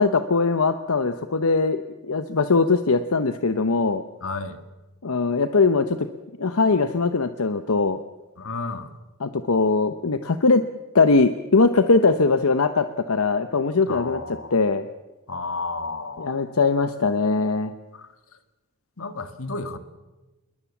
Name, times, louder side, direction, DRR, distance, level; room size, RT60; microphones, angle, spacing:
voice 1, 0.0-1.8 2.1-4.0 5.0-6.0 6.4-8.0 9.2-10.6 10.9-14.2 14.5-14.9 16.2-17.7, left 4 dB, 90° left, 10 dB, 0.9 m, -21 dB
voice 2, 4.2-4.6 8.4-8.9 13.9-14.6 15.3-16.5 17.9-18.1 19.0-19.8, left 3 dB, 70° left, 9 dB, 1.9 m, -32 dB
27.5 x 21.5 x 7.2 m, 1.1 s
head